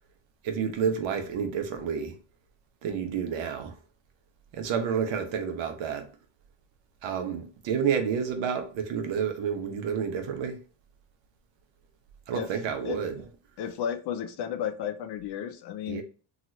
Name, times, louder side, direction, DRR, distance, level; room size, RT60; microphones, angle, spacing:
voice 1, 0.4-2.2 2.8-3.8 4.5-6.1 7.0-10.6 12.3-13.2 15.9-16.0, right 7 dB, 65° right, 0.8 m, -30 dB
voice 2, 13.6-16.0, left 9 dB, 55° left, 0.6 m, -33 dB
2.9 x 2.4 x 2.9 m
cardioid pair, 100°, 48 cm